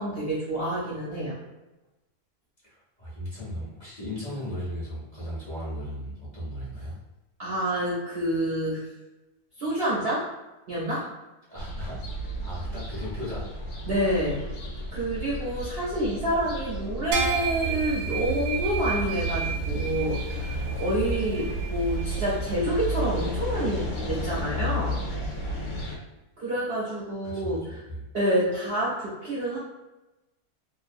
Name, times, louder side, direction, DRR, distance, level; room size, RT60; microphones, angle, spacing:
voice 1, 0.0-1.4 7.4-8.8 9.6-10.3 10.7-11.1 13.9-14.4 14.9-25.0 26.4-27.8 28.1-29.6, right 1 dB, 55° right, -8 dB, 0.7 m, -28 dB
voice 2, 2.6-7.0 11.5-13.4 27.3-28.0, equal, 35° left, -10 dB, 0.8 m, -36 dB
sound 1, 11.6-26.0, equal, 65° left, 0.8 m, -33 dB
sound 2, 17.1-22.7, right 5 dB, 85° right, 1.2 m, -31 dB
2.8 x 2.2 x 2.5 m, 1.0 s
omnidirectional pair, 1.7 m